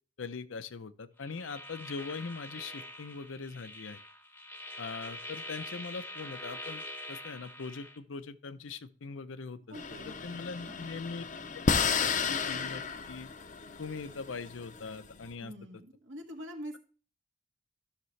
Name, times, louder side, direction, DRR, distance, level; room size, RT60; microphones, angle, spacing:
voice 1, 0.2-4.0 4.8-6.8 7.1-9.8 10.1-11.2 11.5-13.3 13.8-15.5, left 4 dB, 85° left, 13 dB, 0.6 m, -41 dB
sound 1, 1.2-8.0, left 1 dB, 10° left, 0.8 m, -44 dB
sound 2, 9.7-15.3, left 5 dB, 40° left, 0.6 m, -33 dB
voice 2, 9.7-11.0 15.4-16.8, equal, 75° right, 2 dB, 1.8 m, -46 dB
12.0 x 6.6 x 3.2 m, 0.39 s
head